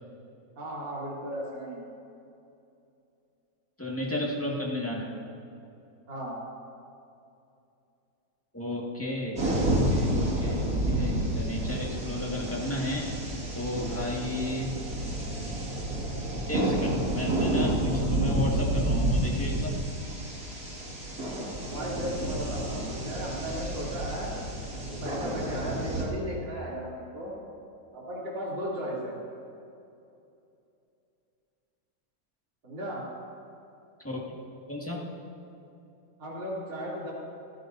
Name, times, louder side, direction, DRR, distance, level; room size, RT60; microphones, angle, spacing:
voice 1, 0.6-1.9 6.1-6.4 21.7-24.3 24.9-27.3 27.9-29.2 32.6-33.0 36.2-37.1, equal, 75° right, -6 dB, 3.8 m, -35 dB
voice 2, 3.8-5.1 8.5-13.1 13.5-14.7 16.5-19.8 34.0-34.4 34.7-35.0, left 1 dB, 5° left, -4 dB, 1.7 m, -33 dB
sound 1, 9.4-26.0, right 1 dB, 50° right, 2.7 m, -30 dB
29.0 x 10.0 x 2.7 m, 2.7 s
omnidirectional pair, 2.0 m